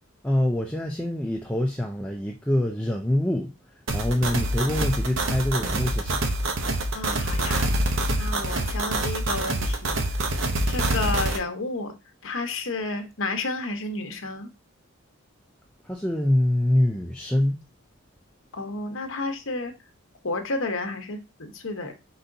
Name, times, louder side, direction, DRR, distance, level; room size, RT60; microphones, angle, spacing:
voice 1, 0.2-3.5 3.9-6.2 15.8-17.6, left 1 dB, 5° left, 0.4 m, -25 dB
sound 1, 3.9-11.4, right 1 dB, 65° right, 0.8 m, -26 dB
voice 2, 6.9-7.9 8.2-10.3 10.6-12.0 12.2-14.5 18.5-19.7 20.2-21.9, left 2 dB, 65° left, 0.9 m, -31 dB
4.7 x 4.1 x 2.6 m
head